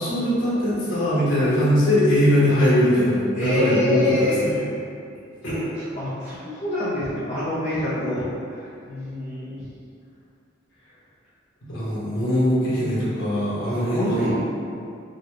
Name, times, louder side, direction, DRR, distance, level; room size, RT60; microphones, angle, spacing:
voice 1, 0.0-4.6 5.4-5.7 11.7-14.3, equal, 80° left, -9 dB, 1.2 m, -21 dB
voice 2, 3.4-4.4 5.4-9.6 13.6-14.4, left 2 dB, 35° left, -11 dB, 0.6 m, -27 dB
3.9 x 2.2 x 3.1 m, 2.4 s
head